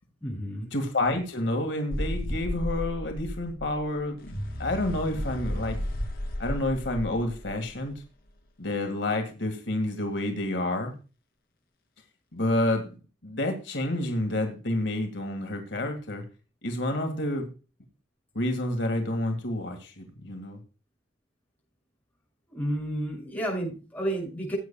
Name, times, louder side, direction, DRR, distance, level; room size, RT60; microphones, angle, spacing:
voice 1, 0.2-0.7 22.5-24.6, right 1 dB, 10° left, 6.3 m, -31 dB
voice 2, 0.7-4.2 4.6-5.8 6.4-8.0 8.6-10.9 12.3-12.9 13.2-16.2 16.6-17.5 18.3-20.6, left 1 dB, 80° left, 1.8 m, -29 dB
sound 1, 1.9-8.0, equal, 55° left, 2.7 m, -33 dB
17.0 x 8.5 x 2.3 m
head